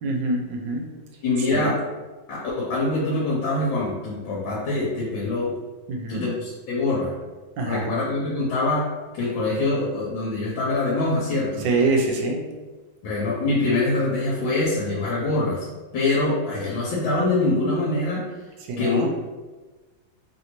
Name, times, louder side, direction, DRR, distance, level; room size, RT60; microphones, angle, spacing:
voice 1, 0.0-0.8 1.5-1.7 5.9-6.3 7.6-7.9 11.6-12.4 18.7-19.1, right 3 dB, 75° right, 0 dB, 1.2 m, -25 dB
voice 2, 1.2-1.8 2.3-5.5 6.1-7.1 7.6-8.9 9.1-11.6 13.0-15.7 15.9-18.2 18.8-19.1, left 2 dB, 85° left, -5 dB, 1.4 m, -24 dB
3.1 x 2.6 x 2.9 m, 1.3 s
omnidirectional pair, 2.1 m